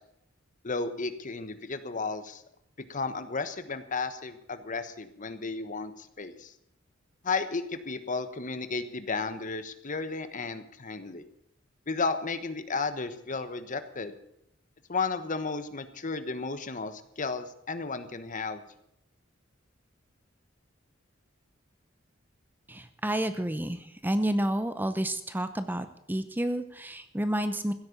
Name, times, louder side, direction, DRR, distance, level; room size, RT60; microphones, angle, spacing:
voice 1, 0.6-2.4 2.9-6.5 7.2-11.2 11.9-14.1 14.9-18.6, left 4 dB, 40° left, 11 dB, 1.2 m, -33 dB
voice 2, 22.7-27.7, right 1 dB, 10° right, 11 dB, 0.7 m, -30 dB
15.5 x 8.6 x 8.5 m, 0.75 s
head